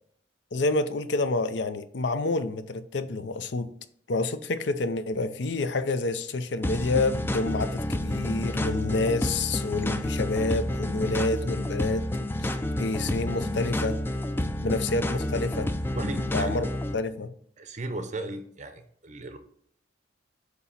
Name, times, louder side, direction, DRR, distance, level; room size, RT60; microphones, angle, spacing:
voice 1, 0.5-3.7 4.1-12.1 12.4-12.5 12.8-14.0 14.6-15.7 16.3-16.7 16.9-17.3, left 3 dB, 65° left, 0.5 m, -28 dB
sound 1, 6.6-16.9, left 1 dB, 10° left, 0.3 m, -29 dB
voice 2, 15.9-16.6 17.6-19.4, right 2 dB, 40° right, 0.6 m, -36 dB
8.2 x 2.9 x 5.7 m
head